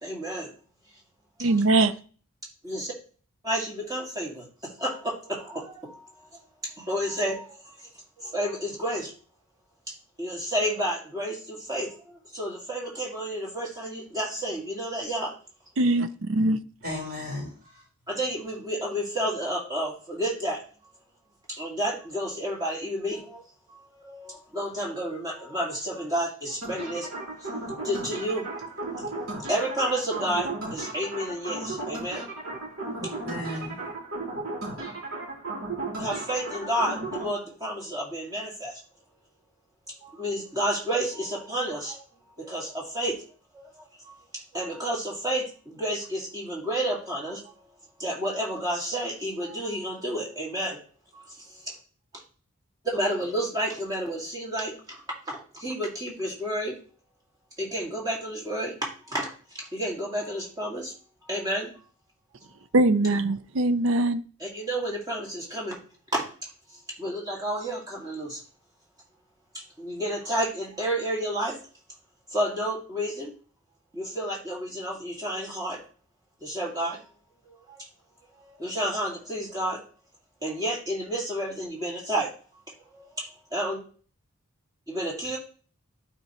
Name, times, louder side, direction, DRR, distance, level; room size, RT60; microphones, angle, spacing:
voice 1, 0.0-0.5 1.4-1.5 2.6-2.9 3.4-6.1 6.8-7.7 8.2-9.1 9.9-15.3 18.1-20.6 21.5-23.4 23.7-27.1 27.8-28.5 28.8-32.2 36.0-38.8 39.9-42.0 42.4-43.2 43.5-44.2 44.5-47.5 48.0-50.8 51.1-51.7 52.8-56.7 57.6-59.3 59.5-60.9 61.3-61.7 64.4-65.8 66.1-66.5 67.0-68.4 69.5-71.6 72.3-73.3 73.9-75.8 76.4-77.0 77.5-77.9 78.4-79.8 80.4-82.3 82.9-83.8 84.9-85.4, right 1 dB, 20° right, 2.0 m, -31 dB
voice 2, 1.4-1.9 15.8-16.1 16.3-16.6 62.7-64.2, right 2 dB, 60° right, 0.5 m, -21 dB
voice 3, 16.8-17.8 33.0-33.8, left 1 dB, 45° right, 4.2 m, -35 dB
sound 1, 26.6-37.3, right 2 dB, 90° right, 3.1 m, -35 dB
12.5 x 4.4 x 3.0 m
head